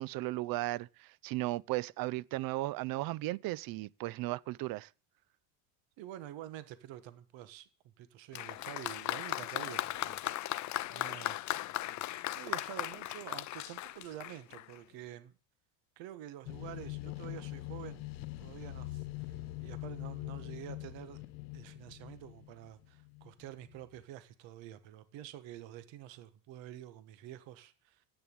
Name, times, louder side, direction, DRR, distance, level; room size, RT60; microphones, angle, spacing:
voice 1, 0.0-4.9, right 18 dB, 45° right, 0.5 m, -36 dB
voice 2, 6.0-7.7 8.0-10.2 10.9-11.4 12.3-15.3 16.0-18.0 18.4-21.2 21.5-28.1, right 12 dB, 60° right, 1.5 m, -48 dB
Applause, 8.3-14.8, left 15 dB, 40° left, 0.5 m, -37 dB
sound 1, 16.5-24.0, left 18 dB, 90° left, 1.0 m, -43 dB
8.8 x 7.0 x 8.7 m
cardioid pair, 125°, 49 cm